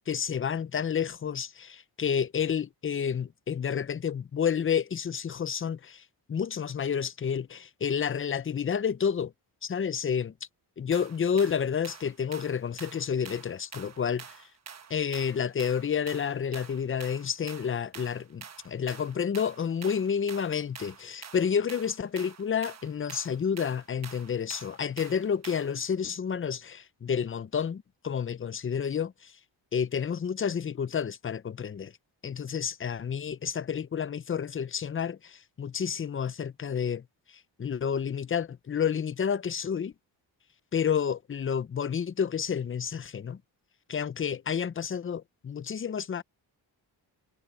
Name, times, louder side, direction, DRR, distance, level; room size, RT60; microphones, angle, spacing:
voice 1, 0.1-6.0 6.3-9.3 9.6-10.3 10.8-14.4 14.9-29.3 29.7-31.9 32.2-37.0 37.6-39.9 40.7-43.4 43.9-46.2, left 7 dB, 30° left, 0.6 m, -30 dB
sound 1, 10.9-25.8, right 6 dB, 35° right, 1.1 m, -47 dB
cardioid pair, 95°, 45 cm